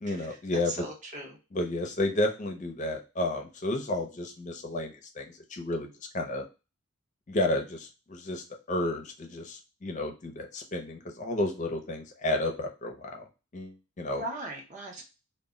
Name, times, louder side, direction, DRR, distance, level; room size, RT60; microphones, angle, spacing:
voice 1, 0.0-0.9 1.5-5.9 6.1-6.4 7.3-13.2 13.5-14.2, left 1 dB, 35° left, 2 dB, 0.5 m, -31 dB
voice 2, 0.7-1.3 14.1-15.0, right 1 dB, 35° right, 0 dB, 0.6 m, -38 dB
2.1 x 2.0 x 3.5 m, 0.30 s
head